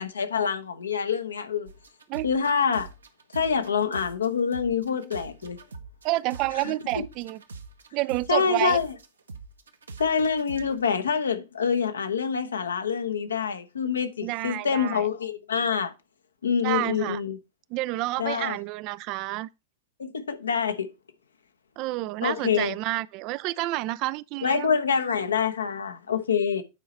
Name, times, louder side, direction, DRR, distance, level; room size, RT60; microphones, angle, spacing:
voice 1, 0.0-1.7 2.2-2.9 3.3-5.6 8.3-8.9 10.0-15.9 16.4-17.4 18.2-18.6 20.0-20.9 22.2-22.7 24.4-26.6, left 6 dB, 70° left, 0.9 m, -26 dB
sound 1, 1.7-4.3 4.5-10.8, right 4 dB, 70° right, 1.0 m, -43 dB
voice 2, 6.0-7.4 7.9-8.8 14.2-15.1 16.6-17.2 17.7-19.5 21.8-24.7, right 18 dB, 40° right, 0.3 m, -29 dB
8.9 x 4.8 x 4.2 m
figure-of-eight pair, 95°, 0 cm